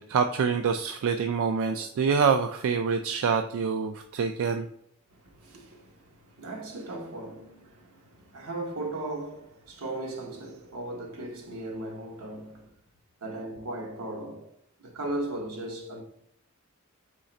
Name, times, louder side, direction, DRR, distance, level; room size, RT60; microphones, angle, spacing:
voice 1, 0.0-4.6, right 6 dB, 65° right, 0.3 m, -26 dB
voice 2, 5.1-12.7 13.2-14.5 14.8-16.0, right 2 dB, 85° right, 1.0 m, -37 dB
3.8 x 3.3 x 4.0 m
head